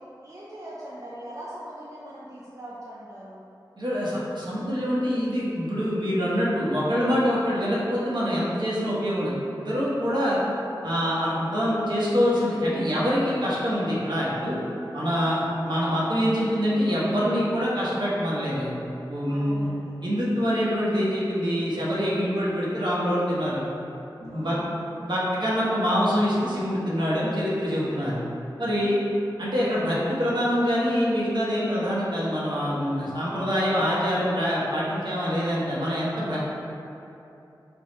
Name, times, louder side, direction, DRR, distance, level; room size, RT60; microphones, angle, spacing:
voice 1, 0.0-3.4 10.0-10.7 15.1-15.4 19.3-19.9 20.3-20.5 24.3-25.2 27.7-27.9 28.8-29.1 33.0-33.6, right 1 dB, 40° right, -7 dB, 0.5 m, -42 dB
voice 2, 3.8-10.4 10.8-14.6 14.9-18.7 19.1-19.7 20.0-23.7 24.2-24.6 25.0-28.2 28.6-29.0 29.4-36.5, equal, 65° right, -7 dB, 0.9 m, -25 dB
3.4 x 2.3 x 4.0 m, 2.9 s
wide cardioid pair, 50°, 8 cm